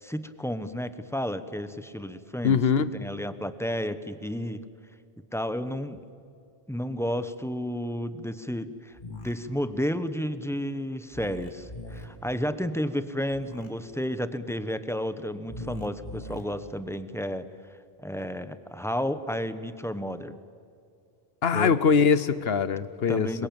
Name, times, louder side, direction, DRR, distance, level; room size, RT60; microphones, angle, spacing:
voice 1, 0.0-2.6 2.9-4.6 5.3-6.0 6.7-17.5 18.0-20.3 21.5-21.7 23.1-23.5, equal, 5° left, 11 dB, 0.9 m, -32 dB
voice 2, 2.4-2.9 21.4-23.3, left 6 dB, 75° left, 15 dB, 1.1 m, -22 dB
sound 1, 8.9-9.3 11.1-12.1 13.3-13.7 15.5-16.4, left 1 dB, 40° left, 3.1 m, -40 dB
26.5 x 23.0 x 8.8 m, 2.4 s
omnidirectional pair, 1.0 m